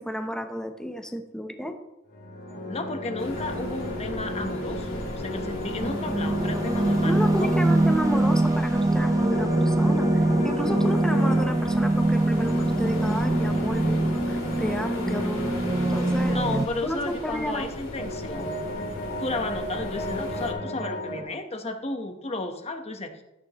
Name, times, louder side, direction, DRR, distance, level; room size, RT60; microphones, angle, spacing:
voice 1, 0.0-1.8 7.0-15.6 15.9-16.4 16.8-17.7, equal, 5° left, 5 dB, 0.9 m, -32 dB
sound 1, 2.1-8.2 9.1-11.6 12.4-16.2 17.5-21.2, left 1 dB, 50° left, 2.8 m, -33 dB
voice 2, 2.7-7.7 16.3-18.6 19.2-23.2, left 2 dB, 30° left, 5 dB, 1.2 m, -33 dB
sound 2, 3.2-20.5, left 1 dB, 80° left, 2.9 m, -38 dB
sound 3, 5.4-16.7, right 2 dB, 15° right, 0.3 m, -24 dB
14.0 x 9.6 x 3.1 m, 0.90 s
head